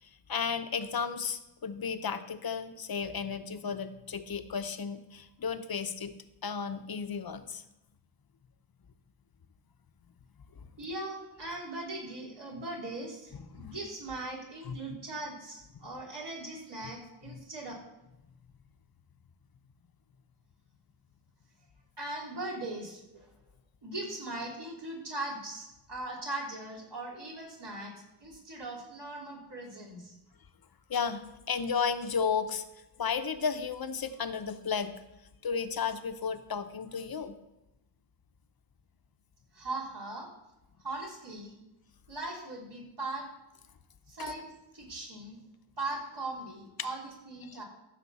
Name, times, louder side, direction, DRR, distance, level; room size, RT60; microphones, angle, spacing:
voice 1, 0.0-6.1 6.4-7.6 13.5-13.7 14.7-14.8 30.9-32.6 33.0-34.9 35.4-37.4 47.4-47.6, left 6 dB, 55° left, 9 dB, 0.8 m, -33 dB
voice 2, 10.8-17.7 22.0-23.3 23.8-27.9 28.2-30.1 39.5-40.3 40.8-41.6 42.1-43.3 44.1-45.4 45.8-47.6, right 2 dB, 70° right, -3 dB, 3.2 m, -39 dB
14.5 x 6.6 x 4.1 m, 0.94 s
wide cardioid pair, 115°, 43 cm